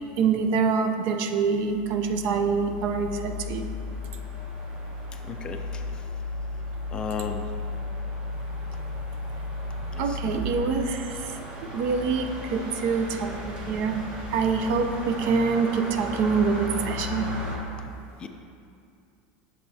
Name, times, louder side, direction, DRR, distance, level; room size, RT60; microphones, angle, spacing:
voice 1, 0.2-3.6 7.2-7.3 10.0-14.0 14.3-17.3, right 5 dB, 55° right, 6 dB, 0.5 m, -25 dB
sound 1, 1.5-17.6, left 2 dB, 30° right, 1.1 m, -35 dB
voice 2, 5.3-5.8 6.9-7.5 9.9-10.2 18.2-18.3, left 5 dB, 20° left, 6 dB, 0.3 m, -34 dB
7.5 x 6.8 x 2.8 m, 2.5 s
supercardioid pair, 150°, 4 cm